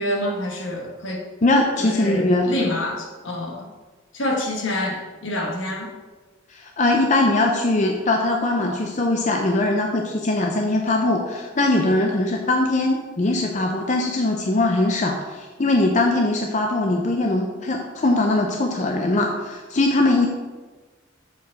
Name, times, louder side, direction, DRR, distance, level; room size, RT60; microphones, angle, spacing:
voice 1, 0.0-1.2 1.8-3.7 4.1-5.9, left 1 dB, 70° left, 1 dB, 1.2 m, -27 dB
voice 2, 1.4-2.5 6.5-20.3, left 2 dB, 35° left, 1 dB, 0.5 m, -21 dB
7.1 x 4.4 x 4.7 m, 1.3 s
head